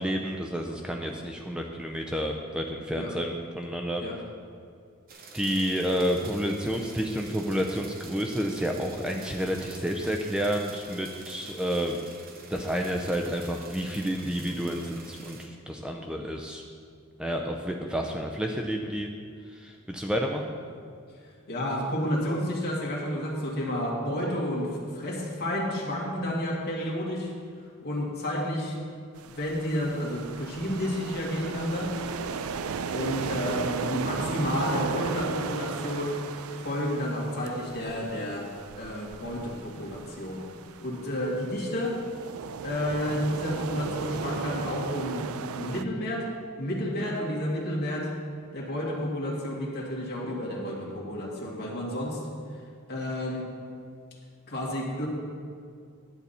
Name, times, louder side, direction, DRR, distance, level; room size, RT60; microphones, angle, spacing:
voice 1, 0.0-4.0 5.3-12.0 12.5-16.6 17.2-19.1 19.5-20.5, equal, 5° right, 1 dB, 0.5 m, -30 dB
sound 1, 5.1-15.5, right 4 dB, 45° right, 0.9 m, -47 dB
voice 2, 21.5-27.3 27.8-28.8 29.2-31.9 32.9-36.2 36.6-38.5 38.8-40.5 40.8-42.0 42.6-45.3 45.5-46.3 46.6-48.1 48.5-52.2 52.9-53.5 54.5-55.1, equal, 50° left, -4 dB, 2.1 m, -30 dB
sound 2, 29.2-45.8, right 6 dB, 80° right, 0.4 m, -36 dB
11.0 x 8.4 x 4.2 m, 2.3 s
head